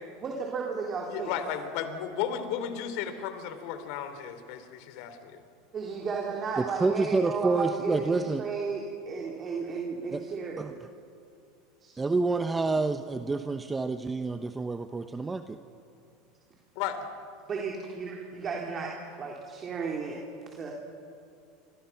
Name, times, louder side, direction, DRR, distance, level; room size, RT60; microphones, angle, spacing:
voice 1, 0.2-1.3 5.7-10.6 11.8-11.9 17.5-18.9 19.2-20.2 20.5-20.7, right 5 dB, 35° right, -1 dB, 3.7 m, -34 dB
voice 2, 1.1-5.4 16.7-17.0, left 8 dB, 65° left, 9 dB, 3.0 m, -34 dB
voice 3, 6.6-8.4 10.1-10.2 10.6-10.7 12.0-15.6, right 3 dB, 15° right, 9 dB, 1.0 m, -28 dB
28.0 x 25.0 x 5.9 m, 2.4 s
hypercardioid pair, 95°, 0 cm